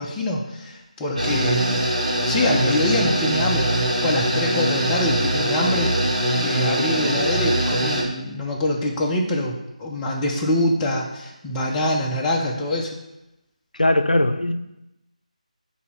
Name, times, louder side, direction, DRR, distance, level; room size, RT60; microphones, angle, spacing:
voice 1, 0.0-1.8 2.3-13.0, left 1 dB, 10° left, -3 dB, 0.5 m, -24 dB
sound 1, 1.2-8.0, right 1 dB, 65° right, 1.5 m, -22 dB
voice 2, 13.8-14.5, left 1 dB, 80° left, 8 dB, 0.5 m, -19 dB
6.6 x 2.7 x 5.6 m, 0.92 s
figure-of-eight pair, 160°, 4 cm